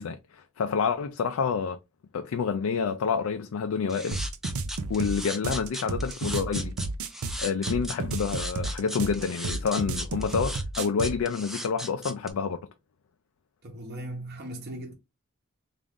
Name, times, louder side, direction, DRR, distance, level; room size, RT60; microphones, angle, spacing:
voice 1, 0.0-1.8 2.1-4.2 4.9-6.8 7.4-12.6, left 6 dB, 85° left, 0.4 m, -28 dB
sound 1, 3.9-12.3, equal, ahead, 0.4 m, -37 dB
sound 2, 4.1-11.2, right 3 dB, 90° right, 0.5 m, -32 dB
voice 2, 13.6-14.9, right 1 dB, 50° right, 0.9 m, -38 dB
3.5 x 2.5 x 3.6 m
head